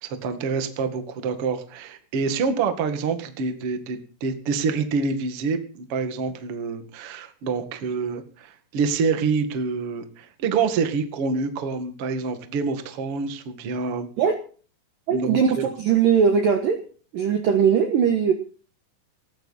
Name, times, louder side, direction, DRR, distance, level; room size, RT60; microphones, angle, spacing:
voice 1, 0.0-14.1 15.1-15.6, right 5 dB, 50° right, 8 dB, 1.8 m, -27 dB
voice 2, 15.1-16.8 17.1-18.3, right 7 dB, 65° right, 6 dB, 2.2 m, -20 dB
18.5 x 14.5 x 4.2 m, 0.40 s
omnidirectional pair, 5.6 m